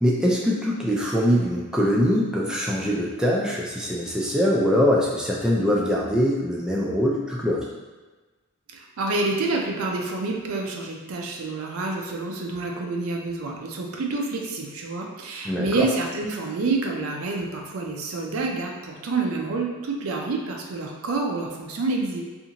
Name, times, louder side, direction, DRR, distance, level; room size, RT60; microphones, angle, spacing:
voice 1, 0.0-7.7 15.4-15.9, equal, 5° right, -4 dB, 0.3 m, -23 dB
voice 2, 8.7-22.2, right 3 dB, 80° right, 1 dB, 0.5 m, -28 dB
2.6 x 2.5 x 2.8 m, 1.2 s
head